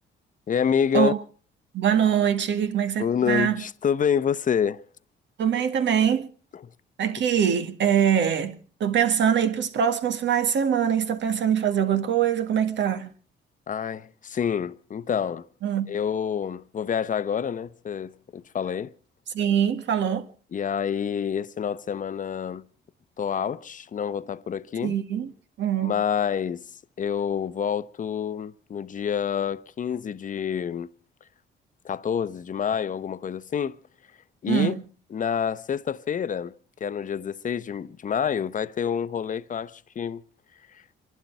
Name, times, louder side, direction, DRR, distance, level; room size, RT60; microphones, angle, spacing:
voice 1, 0.5-1.1 3.0-4.8 6.5-6.6 13.7-15.5 15.9-18.9 20.5-22.6 23.2-24.9 25.8-26.6 27.0-30.9 31.8-33.8 34.4-34.7 35.1-36.5 36.8-40.2 40.7-40.8, left 7 dB, 40° left, 0.8 m, -27 dB
voice 2, 1.7-3.6 5.4-6.3 7.0-8.5 8.8-13.1 15.6-15.9 19.3-20.3 24.8-25.3 25.6-25.9 34.5-34.8, right 8 dB, 65° right, 1.8 m, -23 dB
26.5 x 12.0 x 4.6 m
cardioid pair, 90°, 20 cm